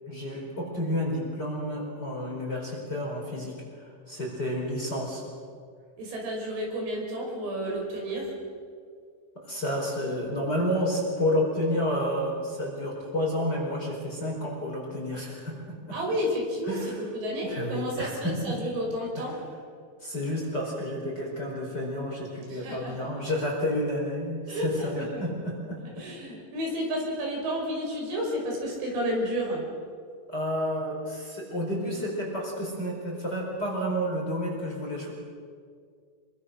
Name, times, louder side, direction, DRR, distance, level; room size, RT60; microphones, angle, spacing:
voice 1, 0.1-5.2 9.3-16.0 16.7-17.0 17.4-18.6 19.1-19.2 20.0-26.1 30.3-35.1, equal, 20° left, -2 dB, 4.9 m, -30 dB
voice 2, 6.0-8.3 15.9-16.8 17.1-19.4 22.5-22.9 24.5-25.2 26.0-29.6, equal, 70° right, -1 dB, 7.6 m, -31 dB
27.0 x 23.5 x 6.5 m, 2.1 s
omnidirectional pair, 5.3 m